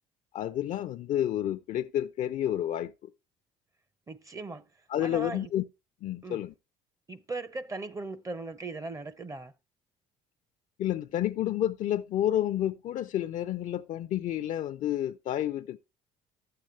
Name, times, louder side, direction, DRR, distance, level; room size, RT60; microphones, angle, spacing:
voice 1, 0.3-3.1 4.9-5.6 6.0-6.5 10.8-15.8, left 12 dB, 55° left, 0.4 m, -30 dB
voice 2, 4.1-4.6 5.0-5.5 6.2-6.4 7.1-9.5, right 3 dB, 20° right, 0.6 m, -38 dB
11.5 x 7.7 x 3.2 m
supercardioid pair, 80°, 15 cm